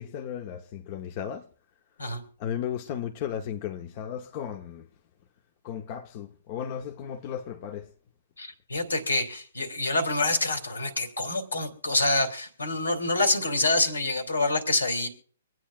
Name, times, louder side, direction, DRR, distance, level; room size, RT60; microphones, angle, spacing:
voice 1, 0.0-1.5 2.4-4.9 5.6-7.9, left 9 dB, 40° left, 1.0 m, -35 dB
voice 2, 8.4-15.1, left 2 dB, 80° left, 2.8 m, -26 dB
25.0 x 9.2 x 2.5 m
figure-of-eight pair, 125°, 0 cm